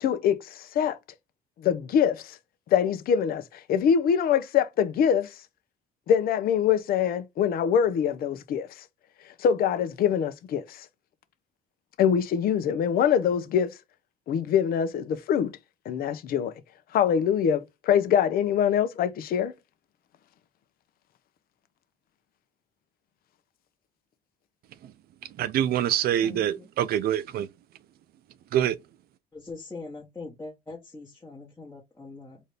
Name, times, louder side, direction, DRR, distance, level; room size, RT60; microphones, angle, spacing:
voice 1, 0.0-1.0 1.6-2.4 2.7-5.3 6.1-8.7 9.4-10.9 12.0-13.8 14.3-15.6 15.9-16.5 16.9-19.5, left 8 dB, 60° left, 0.7 m, -24 dB
voice 2, 25.2-27.5 28.5-28.8, right 10 dB, 65° right, 0.5 m, -25 dB
voice 3, 29.3-32.4, left 3 dB, 15° left, 1.1 m, -42 dB
4.1 x 2.6 x 3.2 m
cardioid pair, 110°, 17 cm